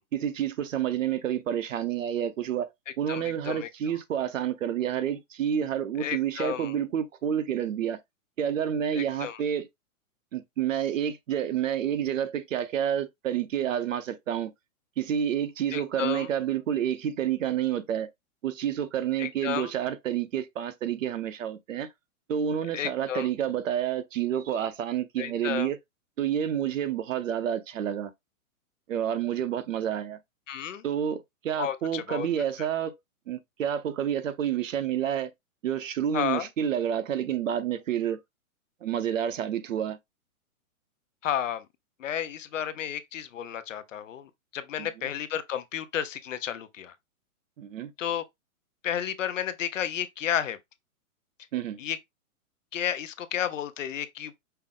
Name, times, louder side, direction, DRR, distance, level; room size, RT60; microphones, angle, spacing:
voice 1, 0.1-2.7 3.0-8.0 8.4-9.7 10.3-14.5 15.0-18.1 18.4-21.9 22.3-25.8 26.2-28.1 28.9-30.2 30.8-33.0 33.3-35.3 35.6-38.2 38.8-40.0 44.8-44.9 47.6-47.9 51.5-51.8, right 9 dB, 60° right, 0.7 m, -29 dB
voice 2, 3.1-3.7 6.0-6.7 8.9-9.4 15.7-16.3 19.2-19.7 22.7-23.3 25.2-25.7 30.5-30.8 31.6-32.3 36.1-36.5 41.2-41.6 42.0-46.9 48.0-48.2 48.8-50.6 51.8-52.0 52.7-54.3, left 9 dB, 60° left, 0.6 m, -32 dB
5.6 x 2.0 x 3.6 m
hypercardioid pair, 175°, 44 cm